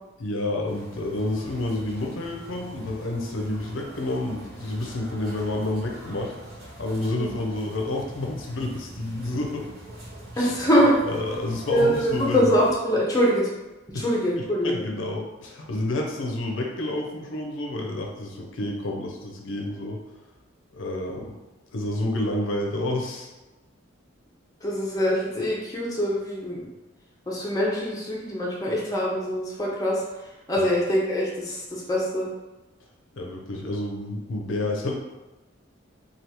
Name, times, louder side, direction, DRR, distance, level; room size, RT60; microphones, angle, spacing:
voice 1, 0.2-6.3 6.8-9.7 10.4-10.5 11.1-12.4 13.9-14.0 14.6-20.0 20.7-21.3 21.7-23.3 33.2-34.9, left 2 dB, 75° left, 0 dB, 0.5 m, -29 dB
sound 1, 0.6-12.7, right 1 dB, 50° right, 0.8 m, -43 dB
voice 2, 10.4-11.0 11.7-13.5 13.9-14.8 24.6-26.7 27.3-32.3, equal, 15° left, -5 dB, 0.6 m, -24 dB
3.4 x 2.4 x 2.9 m, 1.1 s
head